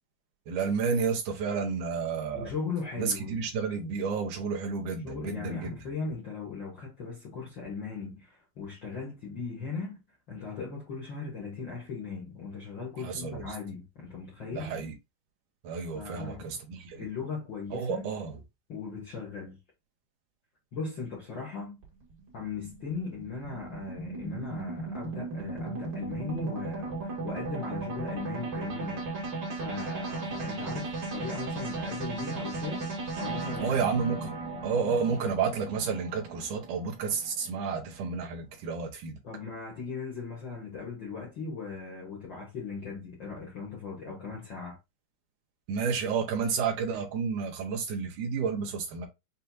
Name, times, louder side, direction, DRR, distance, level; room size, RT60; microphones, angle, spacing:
voice 1, 0.5-2.5 3.0-5.7 13.0-13.4 14.5-14.9 15.6-17.1 17.7-18.4 33.6-34.4 34.6-39.2 45.7-49.1, right 5 dB, 75° right, 2.0 m, -31 dB
voice 2, 2.3-3.3 5.0-10.0 10.3-14.7 15.9-16.5 16.9-18.1 18.7-19.6 20.7-21.8 22.3-29.1 29.6-32.9 33.2-33.9 39.2-44.8, left 4 dB, 80° left, 1.0 m, -38 dB
sound 1, 21.8-38.2, right 3 dB, 45° right, 1.7 m, -36 dB
6.6 x 2.7 x 2.3 m
omnidirectional pair, 4.3 m